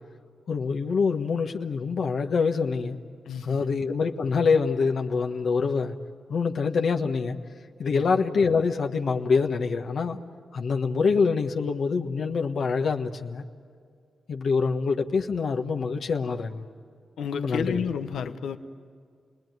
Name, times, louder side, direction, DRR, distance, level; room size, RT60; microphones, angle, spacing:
voice 1, 0.5-3.0 3.4-5.9 6.3-7.4 7.8-10.2 10.5-13.4 14.3-16.6 17.3-17.8, left 5 dB, 70° left, 4 dB, 1.4 m, -25 dB
voice 2, 3.2-3.7 7.8-8.1 17.2-18.6, left 7 dB, 90° left, 8 dB, 1.0 m, -31 dB
29.5 x 20.0 x 9.4 m, 2.2 s
cardioid pair, 70°, 0 cm